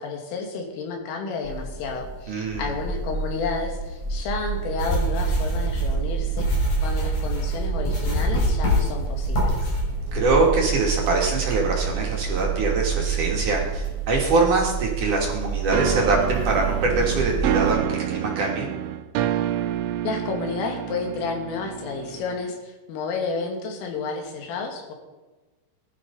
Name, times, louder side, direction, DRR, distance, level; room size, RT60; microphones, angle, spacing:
voice 1, 0.0-9.7 20.0-24.9, left 4 dB, 85° left, 2 dB, 5.0 m, -31 dB
sound 1, 1.4-17.7, right 7 dB, 20° right, 0.9 m, -28 dB
voice 2, 2.3-2.7 10.1-18.7, right 3 dB, 45° right, -2 dB, 3.4 m, -23 dB
sound 2, 4.8-9.8, left 2 dB, 45° left, 7.4 m, -25 dB
sound 3, 15.7-22.6, right 11 dB, 85° right, 3.2 m, -28 dB
20.0 x 12.0 x 5.5 m, 1.2 s
omnidirectional pair, 5.7 m